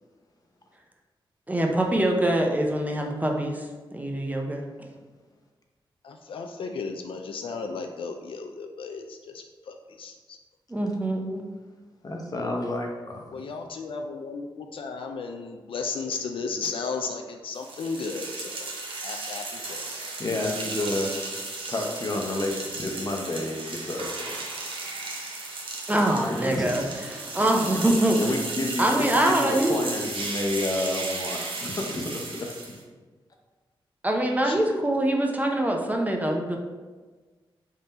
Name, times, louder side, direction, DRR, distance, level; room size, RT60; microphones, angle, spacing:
voice 1, 1.5-4.6 10.7-11.4 25.9-28.2 28.8-29.8 34.0-36.6, right 1 dB, 15° right, 1 dB, 0.6 m, -24 dB
voice 2, 6.0-10.4 13.3-18.7 19.0-20.1 34.4-34.7, left 4 dB, 70° left, 4 dB, 0.4 m, -35 dB
voice 3, 12.0-13.4 20.2-21.1 21.7-24.3 25.0-25.2 26.3-26.7 27.1-27.2 28.2-32.2, left 2 dB, 40° left, 1 dB, 0.8 m, -30 dB
sound 1, 17.5-32.8, right 3 dB, 70° right, 0.8 m, -35 dB
3.7 x 2.6 x 4.2 m, 1.3 s
cardioid pair, 65°, 9 cm